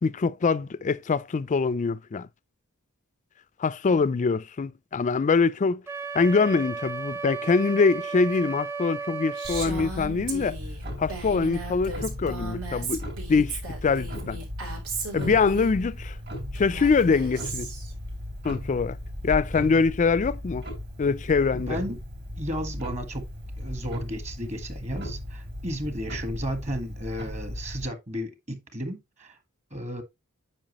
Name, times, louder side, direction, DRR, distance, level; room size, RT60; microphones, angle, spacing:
voice 1, 0.0-2.3 3.6-5.8 6.1-10.6 11.0-14.4 15.1-16.1 16.5-17.7 18.4-19.0 19.2-20.6 21.0-21.8, left 4 dB, 35° left, 0.4 m, -24 dB
Wind instrument woodwind instrument, 5.9-9.7, right 4 dB, 10° right, 0.7 m, -34 dB
Clock, 9.4-27.9, equal, 50° right, 3.6 m, -36 dB
Female speech woman speaking, 9.4-15.7 16.6-17.9, right 3 dB, 80° right, 3.8 m, -36 dB
voice 2, 21.5-22.0 22.4-23.3 23.6-29.4 29.7-30.0, equal, 30° right, 1.5 m, -33 dB
8.8 x 5.8 x 3.0 m
head